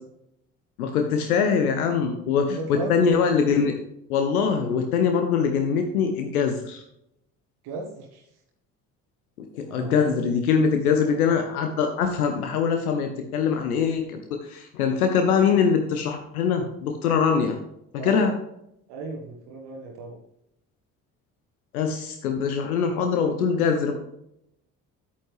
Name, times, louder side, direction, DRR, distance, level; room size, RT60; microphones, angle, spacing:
voice 1, 0.8-3.7 4.1-6.8 9.5-17.6 17.9-18.3 21.7-23.9, left 6 dB, 75° left, 5 dB, 0.9 m, -23 dB
voice 2, 2.5-3.2 7.6-8.2 9.7-10.3 11.1-11.2 17.9-18.3 18.9-20.2, right 3 dB, 60° right, 0 dB, 1.4 m, -35 dB
10.0 x 8.8 x 3.2 m, 0.79 s
figure-of-eight pair, 45°, 44 cm